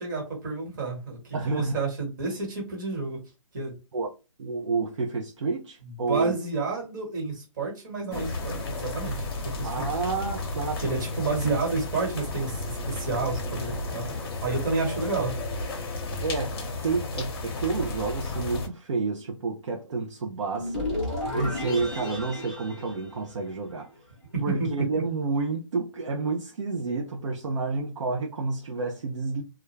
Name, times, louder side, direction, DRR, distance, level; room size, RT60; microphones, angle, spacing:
voice 1, 0.0-3.2 3.5-3.8 5.8-9.9 10.8-15.4 24.3-25.0, right 4 dB, 35° right, 1.4 m, -30 dB
voice 2, 1.3-1.8 3.9-4.1 4.4-6.4 9.6-10.8 16.2-21.0 21.3-23.9 24.4-29.4, right 4 dB, 60° right, 0.5 m, -29 dB
sound 1, 8.1-18.7, left 2 dB, 45° left, 0.7 m, -33 dB
sound 2, 20.5-23.8, left 1 dB, ahead, 0.8 m, -33 dB
2.2 x 2.2 x 3.1 m
hypercardioid pair, 160°, 17 cm